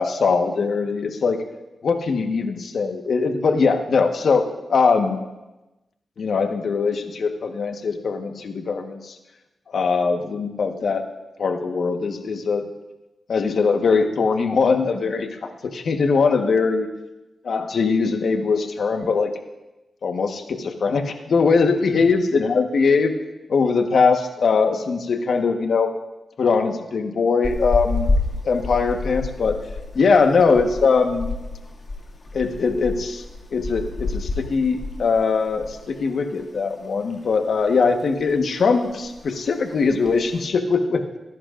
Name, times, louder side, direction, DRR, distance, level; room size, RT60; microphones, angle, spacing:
voice 1, 0.0-1.4 1.8-5.2 6.2-9.1 9.7-11.0 11.4-12.6 13.3-15.3 15.7-16.9 17.4-19.3 20.0-23.1 23.5-25.9 26.4-28.1 28.4-29.6 29.9-31.3 32.3-33.2 33.5-41.0, left 4 dB, 65° left, 5 dB, 1.3 m, -21 dB
sound 1, 27.4-36.0 36.2-36.4 36.8-37.7 38.0-38.4 38.6-38.7 38.9-39.4 39.9-40.4, left 3 dB, 40° left, 2.2 m, -29 dB
25.5 x 11.0 x 2.6 m, 1.0 s
cardioid pair, 90°, 0 cm